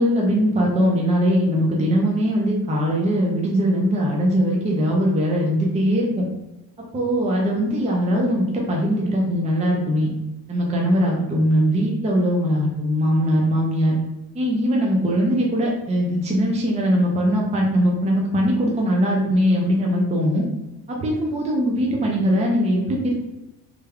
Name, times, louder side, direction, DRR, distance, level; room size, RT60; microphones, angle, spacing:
voice 1, 0.0-6.2 6.9-10.1 10.5-14.0 14.3-20.4 20.9-23.1, equal, 15° right, -2 dB, 0.6 m, -21 dB
3.3 x 2.2 x 3.5 m, 1.0 s
cardioid pair, 125°, 41 cm